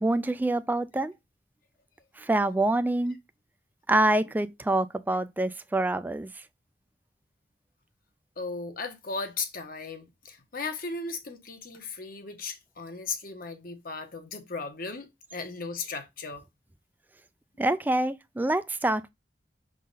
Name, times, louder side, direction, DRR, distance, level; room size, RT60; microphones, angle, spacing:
voice 1, 0.0-1.1 2.2-3.2 3.9-6.3 17.6-19.1, right 1 dB, 10° right, 0.3 m, -26 dB
voice 2, 8.4-16.4, left 4 dB, 55° left, 1.2 m, -36 dB
6.2 x 3.9 x 3.9 m
head